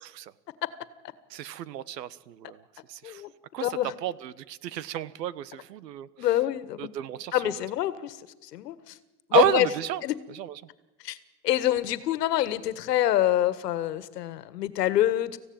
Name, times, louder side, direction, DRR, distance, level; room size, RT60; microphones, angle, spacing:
voice 1, 0.0-0.3 1.3-2.6 2.9-3.2 3.5-3.7 4.0-6.1 6.8-7.5 9.3-10.0 10.3-10.6, right 11 dB, 90° right, 19 dB, 1.2 m, -31 dB
voice 2, 3.6-3.9 6.2-6.9 7.3-8.2 8.5-8.9 9.3-9.7 10.0-10.1 11.0-11.2 11.4-15.4, left 13 dB, 75° left, 15 dB, 1.7 m, -26 dB
26.5 x 16.0 x 8.8 m, 1.1 s
supercardioid pair, 175°, 48 cm